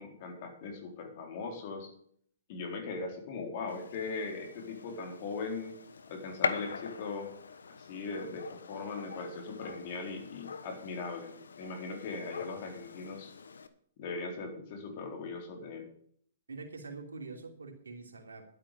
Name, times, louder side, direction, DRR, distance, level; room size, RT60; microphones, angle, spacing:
voice 1, 0.0-1.9 2.5-5.8 6.1-7.3 7.8-13.3 14.0-15.9, left 4 dB, 50° left, 3 dB, 4.0 m, -39 dB
Gunshot gunfire, 3.7-13.7, left 5 dB, 85° left, 1.2 m, -42 dB
voice 2, 16.5-18.4, right 3 dB, 85° right, 3 dB, 3.0 m, -45 dB
12.0 x 8.8 x 6.8 m, 0.62 s
hypercardioid pair, 125°, 0 cm